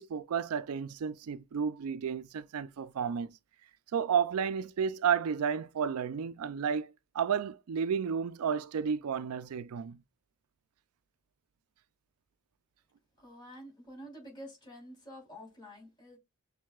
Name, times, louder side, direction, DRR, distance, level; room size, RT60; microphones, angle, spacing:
voice 1, 0.0-3.4 3.9-10.0, right 7 dB, 80° right, 0.4 m, -32 dB
voice 2, 13.2-16.2, equal, 20° left, 3.4 m, -49 dB
6.5 x 3.4 x 2.3 m
head